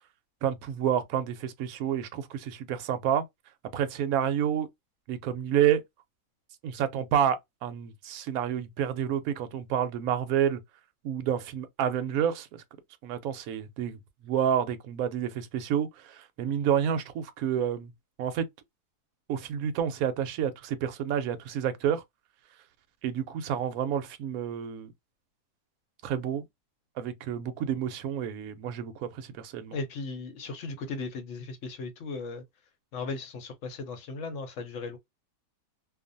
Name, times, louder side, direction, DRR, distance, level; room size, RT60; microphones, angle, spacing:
voice 1, 0.4-3.2 3.7-4.7 5.1-5.8 6.6-7.4 7.6-10.6 11.0-12.6 13.0-17.9 18.2-18.5 19.3-22.0 23.0-24.9 26.0-26.4 27.0-29.8, right 9 dB, 70° right, 0.9 m, -29 dB
voice 2, 29.7-32.4 32.9-35.0, left 3 dB, 60° left, 1.0 m, -37 dB
2.5 x 2.4 x 2.5 m
omnidirectional pair, 1.7 m